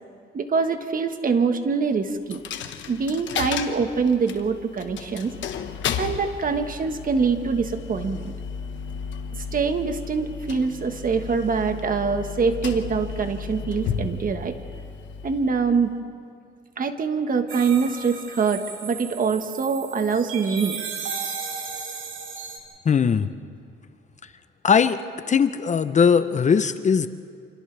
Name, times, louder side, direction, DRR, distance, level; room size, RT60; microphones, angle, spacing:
voice 1, 0.3-2.4 2.9-5.3 6.0-8.3 9.3-14.5 15.2-15.9 16.8-20.8, right 5 dB, 45° right, 7 dB, 1.5 m, -24 dB
Coin (dropping), 2.3-16.0, left 6 dB, 70° left, 1.3 m, -33 dB
sound 1, 17.5-22.6, right 6 dB, 80° right, 2.5 m, -35 dB
voice 2, 22.8-23.3 24.6-25.0 25.3-27.1, left 6 dB, 35° left, 11 dB, 0.7 m, -19 dB
29.0 x 26.0 x 3.4 m, 2.3 s
cardioid pair, 90°, 20 cm